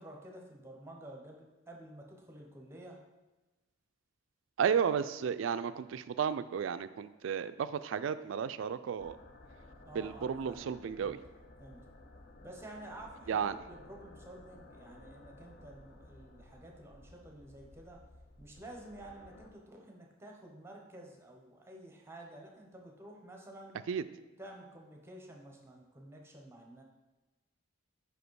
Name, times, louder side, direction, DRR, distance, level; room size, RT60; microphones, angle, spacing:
voice 1, 0.0-3.0 9.8-10.7 11.0-11.2 11.6-11.8 12.4-18.0 18.4-23.8 24.4-26.8, right 1 dB, 15° right, 0 dB, 0.9 m, -51 dB
voice 2, 4.6-9.2 9.9-11.2 13.3-13.5 23.9-24.0, right 7 dB, 70° right, 13 dB, 0.3 m, -33 dB
sound 1, 9.0-19.5, left 1 dB, 45° left, 0.6 m, -56 dB
5.1 x 5.1 x 4.7 m, 1.1 s
head